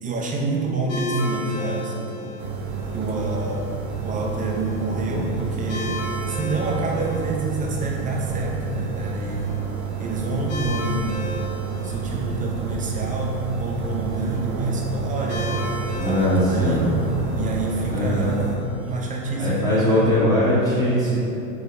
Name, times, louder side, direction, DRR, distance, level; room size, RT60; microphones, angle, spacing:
voice 1, 0.0-2.4 2.9-3.7 4.0-6.0 6.3-9.5 10.0-11.3 11.8-15.7 16.1-17.1 17.4-20.0, right 2 dB, 20° right, -1 dB, 0.5 m, -27 dB
sound 1, 0.9-20.0, left 1 dB, 60° left, 1.2 m, -37 dB
sound 2, 2.4-18.6, right 6 dB, 60° right, 0.6 m, -30 dB
voice 2, 15.9-16.9 17.9-18.4 19.4-21.2, left 1 dB, 10° left, -11 dB, 0.9 m, -20 dB
4.2 x 2.2 x 4.1 m, 2.7 s
hypercardioid pair, 100°, 42 cm